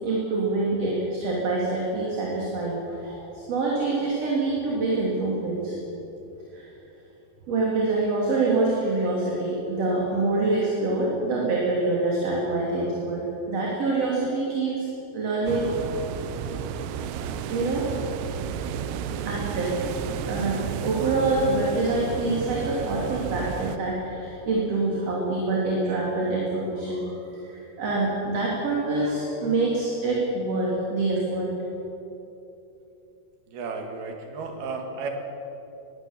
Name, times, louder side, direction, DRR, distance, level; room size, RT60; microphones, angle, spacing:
voice 1, 0.0-5.8 6.5-6.7 7.5-13.2 13.5-14.9 15.1-15.7 17.5-17.9 18.9-19.8 20.3-31.5, right 2 dB, 40° right, -4 dB, 3.5 m, -26 dB
sound 1, 15.5-23.8, right 7 dB, 90° right, 3.1 m, -32 dB
voice 2, 33.5-35.1, right 4 dB, 70° right, 4 dB, 3.7 m, -33 dB
21.5 x 16.5 x 7.4 m, 3.0 s
omnidirectional pair, 4.8 m